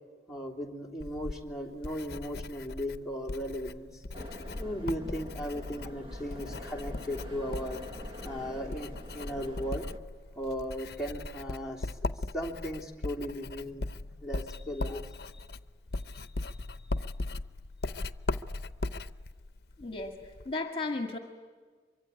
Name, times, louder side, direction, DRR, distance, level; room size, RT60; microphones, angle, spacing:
voice 1, 0.3-4.0 4.6-7.8 8.2-9.8 10.3-15.4 16.1-16.7, equal, ahead, 1 dB, 3.0 m, -37 dB
Writing, 1.0-20.5, left 2 dB, 60° left, 0.7 m, -39 dB
sound 1, 4.1-10.0, left 1 dB, 30° right, 1.7 m, -44 dB
voice 2, 19.8-20.2 20.5-21.2, left 3 dB, 30° left, 5 dB, 1.9 m, -34 dB
24.5 x 24.0 x 10.0 m, 1.5 s
head